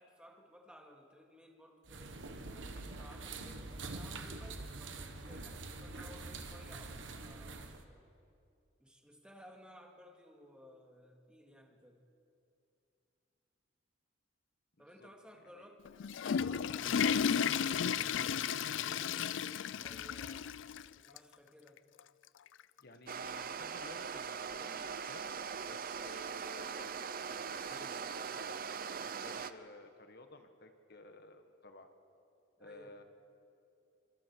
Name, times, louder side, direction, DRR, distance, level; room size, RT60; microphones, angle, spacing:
voice 1, 0.0-2.2 2.5-8.1 8.8-12.0 14.8-15.8 16.3-20.6 21.0-21.8 32.6-32.9, equal, 5° right, 1 dB, 2.1 m, -58 dB
sound 1, 1.9-7.8, right 3 dB, 70° right, 1.5 m, -45 dB
voice 2, 14.8-15.1 15.3-15.7 22.8-28.6 28.9-31.9 32.6-33.0, left 2 dB, 55° left, 7 dB, 1.5 m, -55 dB
Water / Toilet flush, 15.9-20.9 21.2-21.3 22.0-22.1 23.4-23.5, left 7 dB, 70° left, 0.4 m, -33 dB
sound 2, 23.1-29.5, right 6 dB, 50° right, 0.7 m, -41 dB
25.0 x 25.0 x 4.7 m, 2.6 s
head